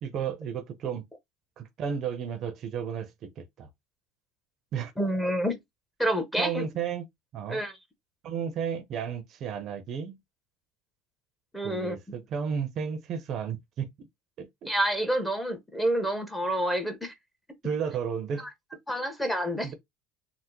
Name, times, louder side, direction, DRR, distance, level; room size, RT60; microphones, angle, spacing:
voice 1, 0.0-1.0 1.6-3.7 4.7-4.9 6.4-7.0 7.3-7.6 8.2-10.2 11.6-14.1 14.4-14.7 17.6-18.5 19.6-19.7, right 7 dB, 45° right, 0.6 m, -33 dB
voice 2, 5.0-5.6 6.0-6.6 7.5-7.7 11.5-12.0 14.6-17.1 18.4-18.5 18.9-19.7, right 1 dB, 5° left, 0.8 m, -28 dB
3.4 x 2.0 x 2.9 m
supercardioid pair, 110°, 0 cm